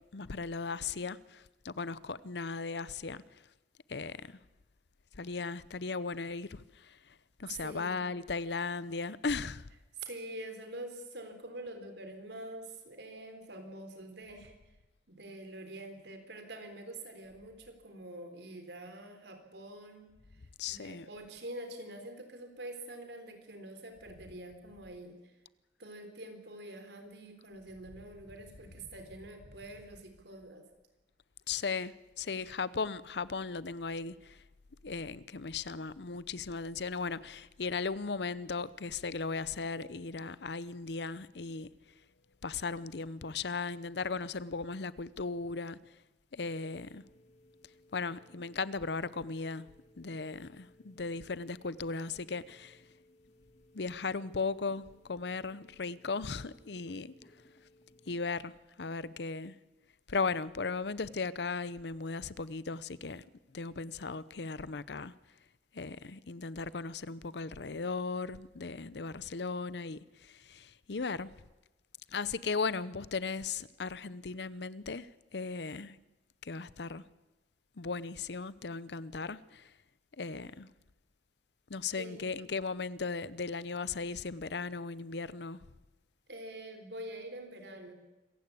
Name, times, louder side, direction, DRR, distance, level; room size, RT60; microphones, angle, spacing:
voice 1, 0.1-3.2 3.9-4.3 5.2-7.0 7.4-9.6 20.6-21.1 31.5-34.4 34.8-41.7 42.4-45.8 46.3-47.0 47.9-49.7 50.0-52.8 53.7-57.1 58.1-59.5 60.1-63.2 63.5-65.1 65.7-71.3 72.1-76.0 76.4-77.0 77.8-79.7 80.2-80.7 81.7-85.6, left 4 dB, 70° left, 0.7 m, -37 dB
voice 2, 7.4-8.1 10.0-14.5 15.1-20.1 20.7-25.3 25.8-30.7 82.0-82.4 86.3-87.9, right 1 dB, 70° right, 3.8 m, -46 dB
sound 1, 46.4-58.1, left 1 dB, 40° left, 1.8 m, -63 dB
26.0 x 15.5 x 8.4 m
head